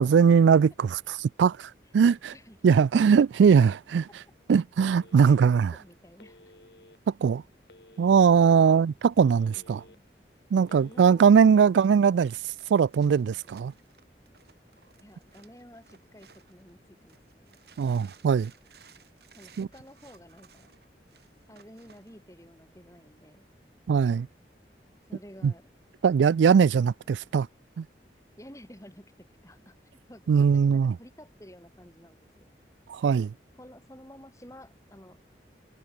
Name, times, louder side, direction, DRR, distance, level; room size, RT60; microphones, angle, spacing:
voice 1, 0.0-2.3 2.6-4.1 4.5-5.7 7.1-7.4 8.0-9.8 10.5-12.4 12.7-13.7 17.8-18.5 19.6-19.7 23.9-24.3 25.4-25.5 26.0-27.5 27.8-27.9 30.3-31.0 32.9-33.3, right 6 dB, 90° right, 0.3 m, -21 dB
Telephone, 5.0-5.7 6.2-7.0 7.7-8.5 8.9-10.0 10.6-11.0, left 1 dB, 70° left, 5.5 m, -54 dB
voice 2, 5.3-6.4 8.6-8.9 9.6-10.1 10.7-11.7 15.0-17.6 19.3-20.7 21.5-23.5 25.1-25.6 28.4-29.8 30.1-32.5 33.6-35.2, equal, 15° left, 6.5 m, -51 dB
sound 1, 12.3-16.7 17.1-22.1, right 6 dB, 65° right, 6.1 m, -58 dB
head